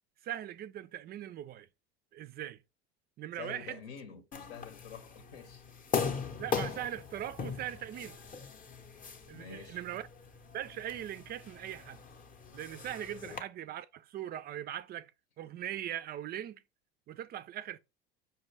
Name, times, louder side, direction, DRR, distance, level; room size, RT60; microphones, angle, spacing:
voice 1, 0.2-1.7 2.1-2.6 3.2-3.8 6.4-8.2 9.3-10.1 10.5-12.0 12.5-15.1 15.4-16.6 17.1-17.8, right 11 dB, 30° right, 0.4 m, -40 dB
voice 2, 3.4-5.6 9.3-9.8 13.0-13.4, left 7 dB, 75° left, 0.9 m, -48 dB
sound 1, 4.3-13.4, left 6 dB, 25° left, 0.7 m, -40 dB
5.6 x 2.2 x 3.3 m
hypercardioid pair, 80°, 31 cm